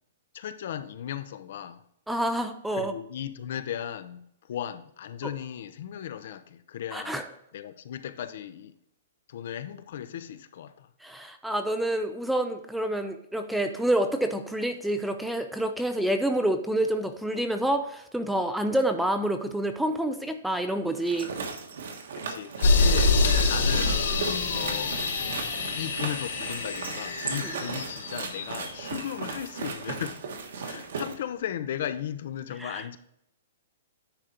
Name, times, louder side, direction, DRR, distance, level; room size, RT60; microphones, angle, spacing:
voice 1, 0.3-1.8 2.7-7.2 7.5-8.7 9.3-10.9 22.1-24.0 24.5-24.9 25.7-30.2 30.6-33.0, left 10 dB, 50° left, 0.5 m, -36 dB
voice 2, 2.1-2.9 6.9-7.2 11.0-21.3 27.4-27.5 32.6-32.8, right 1 dB, ahead, 0.4 m, -28 dB
sound 1, 20.9-31.2, right 4 dB, 65° right, 1.3 m, -37 dB
sound 2, 22.6-29.0, left 3 dB, 75° left, 3.0 m, -26 dB
9.9 x 3.8 x 4.3 m
hypercardioid pair, 170°, 0 cm